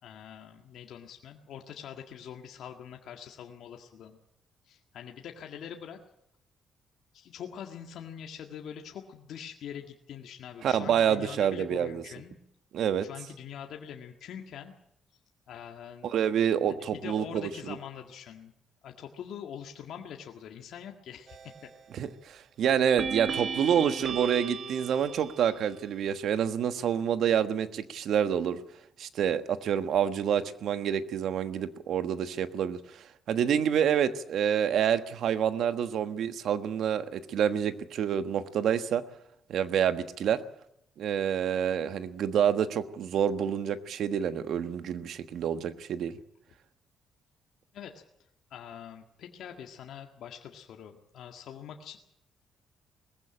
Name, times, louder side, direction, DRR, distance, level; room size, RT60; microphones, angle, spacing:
voice 1, 0.0-4.2 4.6-6.0 7.1-12.4 13.0-14.7 15.5-16.1 16.9-18.5 18.8-21.7 47.7-47.9 48.5-52.0, left 8 dB, 75° left, 3 dB, 1.9 m, -44 dB
voice 2, 10.6-12.0 12.7-13.1 16.0-17.8 21.9-28.6 29.0-39.0 39.5-40.4 41.0-46.2, right 8 dB, 70° right, 11 dB, 1.3 m, -28 dB
sound 1, 21.3-21.8 23.0-25.7, right 6 dB, 50° right, 1.3 m, -36 dB
20.0 x 15.0 x 8.9 m, 0.77 s
cardioid pair, 90°, 0 cm